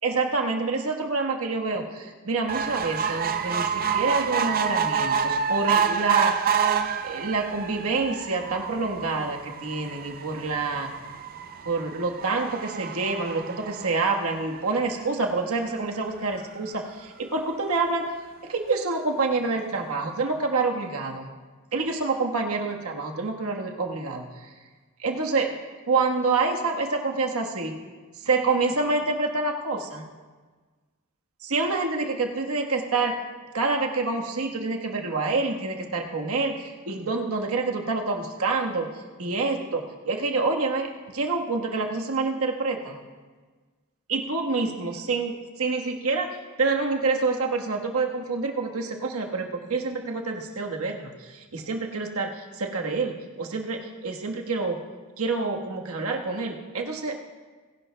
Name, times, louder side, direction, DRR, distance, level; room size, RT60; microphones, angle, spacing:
voice 1, 0.0-6.4 7.0-10.9 11.6-18.1 18.4-21.3 21.7-24.5 25.0-25.5 25.9-27.8 28.2-30.0 31.4-33.2 33.5-38.9 39.2-43.0 44.1-45.3 45.6-54.8 55.2-57.2, right 3 dB, 80° right, 1 dB, 1.3 m, -27 dB
sound 1, 2.5-15.1 15.6-15.7 16.0-16.1 16.4-16.5, right 7 dB, 40° right, 0.5 m, -28 dB
20.5 x 11.0 x 2.2 m, 1.4 s
head